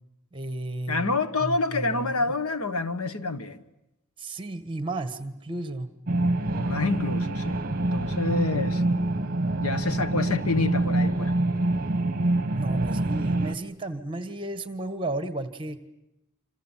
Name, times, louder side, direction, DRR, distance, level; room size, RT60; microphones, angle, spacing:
voice 1, 0.3-2.3 4.2-5.9 12.5-15.8, right 2 dB, 20° right, 1.4 m, -33 dB
voice 2, 0.9-3.6 6.5-8.8 9.6-11.3, left 3 dB, 80° left, 1.5 m, -28 dB
sound 1, 6.1-13.6, right 2 dB, 40° right, 1.1 m, -26 dB
27.5 x 26.5 x 7.4 m
head